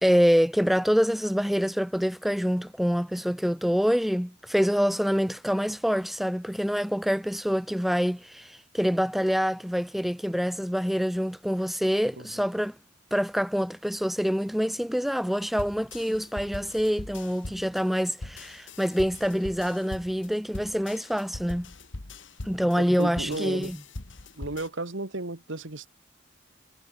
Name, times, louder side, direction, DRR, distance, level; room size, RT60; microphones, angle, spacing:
voice 1, 0.0-12.8 13.1-21.7 22.4-23.8, equal, ahead, 0.3 m, -26 dB
sound 1, 15.6-24.7, left 2 dB, 65° left, 1.6 m, -41 dB
voice 2, 22.8-23.7 24.4-25.9, right 2 dB, 65° right, 1.7 m, -34 dB
head